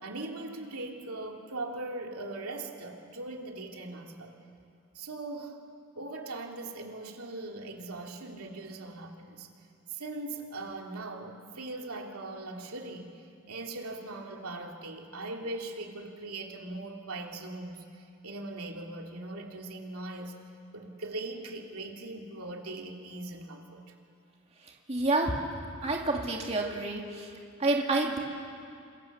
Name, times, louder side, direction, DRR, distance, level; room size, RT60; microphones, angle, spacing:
voice 1, 0.0-4.4 4.9-5.6 5.9-9.5 9.9-20.4 20.7-23.8, right 2 dB, 90° right, 1 dB, 2.8 m, -40 dB
voice 2, 24.9-25.3 25.8-27.3 27.6-28.2, right 2 dB, 30° right, 0 dB, 2.4 m, -28 dB
29.0 x 26.5 x 7.3 m, 2.5 s
head